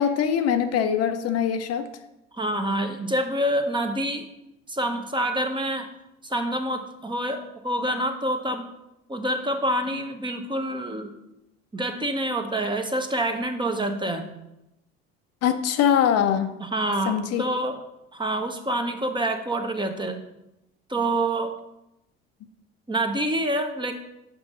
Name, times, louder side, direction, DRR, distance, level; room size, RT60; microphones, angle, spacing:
voice 1, 0.0-1.9 15.4-16.5 17.1-17.4, left 8 dB, 55° left, 8 dB, 0.7 m, -22 dB
voice 2, 2.3-4.3 4.7-5.9 6.2-8.7 9.1-11.1 11.7-14.3 16.6-17.8 18.1-20.2 20.9-21.5 22.9-23.9, right 1 dB, 15° right, 5 dB, 0.9 m, -27 dB
6.0 x 5.2 x 4.9 m, 0.89 s
hypercardioid pair, 70°, 31 cm